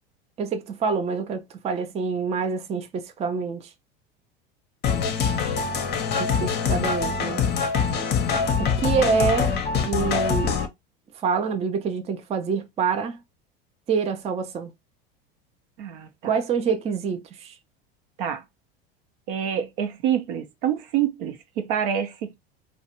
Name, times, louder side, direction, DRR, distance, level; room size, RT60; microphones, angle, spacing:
voice 1, 0.4-3.7 6.2-7.4 8.6-9.5 9.8-10.6 11.1-13.2 13.9-14.7 16.2-17.6, right 6 dB, 20° right, 0.4 m, -26 dB
sound 1, 4.8-10.7, left 6 dB, 35° left, 0.6 m, -24 dB
voice 2, 15.8-16.3 18.2-18.4 19.3-22.4, right 9 dB, 65° right, 0.7 m, -27 dB
2.3 x 2.1 x 2.8 m
hypercardioid pair, 90°, 29 cm